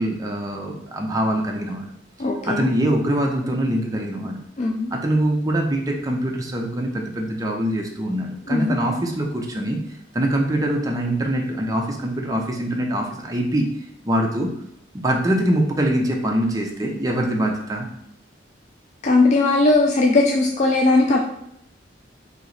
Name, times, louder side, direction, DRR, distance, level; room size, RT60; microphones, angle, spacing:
voice 1, 0.0-1.8 2.4-4.4 4.9-9.8 10.1-13.7 14.0-14.5 14.9-17.9, right 1 dB, 20° right, 0 dB, 0.5 m, -23 dB
voice 2, 2.2-2.7 4.6-4.9 8.5-8.7 19.0-21.2, left 2 dB, 40° left, 0 dB, 0.4 m, -18 dB
3.0 x 2.9 x 3.9 m, 0.74 s
head